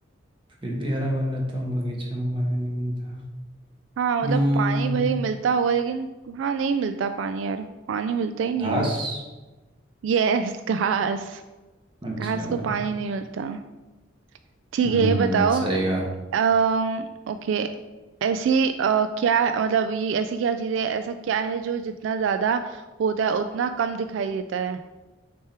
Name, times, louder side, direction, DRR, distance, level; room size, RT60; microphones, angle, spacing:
voice 1, 0.6-3.2 4.2-5.0 8.6-9.2 12.0-12.6 14.8-16.0, equal, 25° right, -2 dB, 1.2 m, -26 dB
voice 2, 4.0-8.9 10.0-11.4 12.2-13.6 14.7-15.6 16.3-17.7 18.2-24.8, right 6 dB, 80° right, 9 dB, 0.3 m, -25 dB
6.4 x 3.5 x 4.3 m, 1.2 s
head